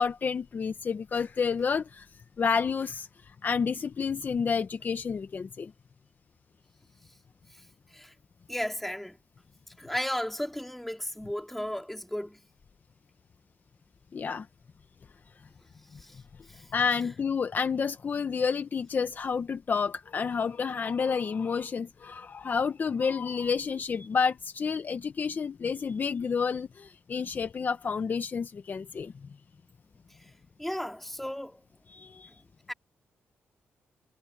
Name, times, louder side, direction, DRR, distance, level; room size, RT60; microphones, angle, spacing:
voice 1, 0.0-2.1 2.4-5.7 14.1-14.5 16.7-29.3 31.9-32.3, left 6 dB, 45° left, 0.9 m, -30 dB
voice 2, 8.5-9.2 9.8-12.4 16.0-16.2 16.5-16.7 30.1-30.3 30.6-31.6 32.1-32.2 32.7-32.8, equal, 5° left, 3.6 m, -34 dB
cardioid pair, 105°, 4 cm